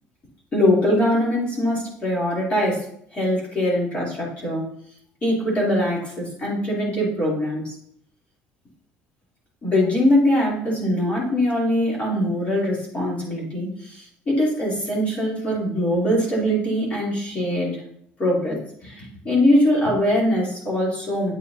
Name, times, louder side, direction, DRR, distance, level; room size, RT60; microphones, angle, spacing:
voice 1, 0.5-2.8 3.1-4.7 5.2-7.7 9.6-17.8 18.2-21.3, left 1 dB, 30° left, -5 dB, 2.8 m, -22 dB
8.7 x 6.8 x 2.6 m, 0.68 s
cardioid pair, 130°, 4 cm